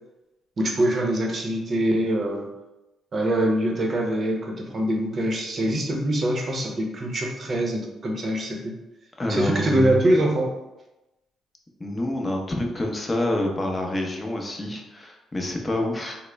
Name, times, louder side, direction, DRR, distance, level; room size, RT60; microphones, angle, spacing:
voice 1, 0.6-2.5 3.1-8.7 9.3-10.5, right 1 dB, 40° right, 1 dB, 0.7 m, -24 dB
voice 2, 9.2-10.0 11.8-16.2, left 1 dB, 20° left, 1 dB, 0.7 m, -27 dB
3.5 x 2.1 x 3.3 m, 0.98 s
cardioid pair, 90°, 0 cm